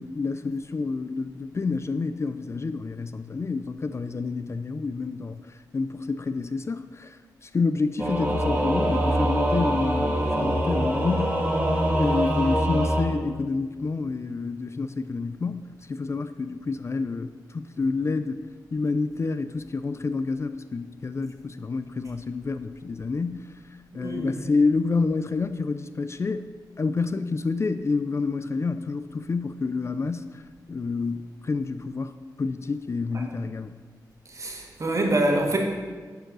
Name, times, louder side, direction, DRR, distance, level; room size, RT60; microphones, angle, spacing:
voice 1, 0.0-11.4 12.0-18.4 18.7-23.4 23.9-26.5 26.8-30.4 30.7-33.8, left 4 dB, 40° left, 11 dB, 0.4 m, -28 dB
Singing / Musical instrument, 8.0-13.0, right 1 dB, 20° right, 2.4 m, -24 dB
voice 2, 23.9-24.3 33.1-33.3 34.3-35.6, right 2 dB, 45° right, 1 dB, 1.8 m, -25 dB
11.5 x 4.6 x 6.2 m, 1.5 s
wide cardioid pair, 95°, 7 cm